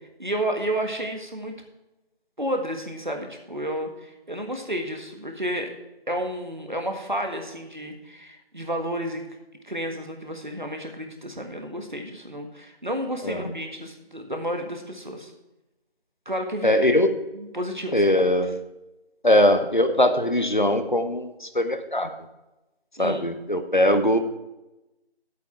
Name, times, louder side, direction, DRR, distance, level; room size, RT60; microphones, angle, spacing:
voice 1, 0.2-1.5 2.4-5.7 6.1-9.2 9.6-15.3 16.2-16.7 17.3-18.2 23.0-23.2, equal, 50° right, 4 dB, 1.6 m, -31 dB
voice 2, 13.2-13.6 16.6-17.2 17.9-18.6 19.2-22.1 23.0-24.2, left 1 dB, 50° left, 8 dB, 1.1 m, -21 dB
10.5 x 8.3 x 4.6 m, 0.99 s
figure-of-eight pair, 180°, 31 cm